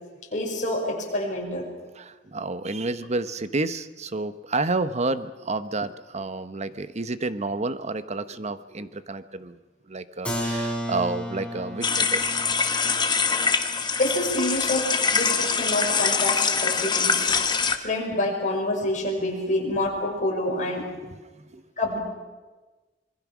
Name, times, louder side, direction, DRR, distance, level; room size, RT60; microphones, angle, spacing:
voice 1, 0.3-1.7 14.0-17.3 17.8-20.9 21.8-22.0, left 1 dB, 40° left, -1 dB, 5.8 m, -27 dB
voice 2, 2.0-9.6 9.9-12.4 21.0-21.6, right 3 dB, 35° right, 13 dB, 0.9 m, -30 dB
Keyboard (musical), 10.2-15.8, equal, 5° left, 3.5 m, -35 dB
sound 1, 11.8-17.8, left 5 dB, 25° left, 1.3 m, -24 dB
26.0 x 21.0 x 6.2 m, 1.2 s
head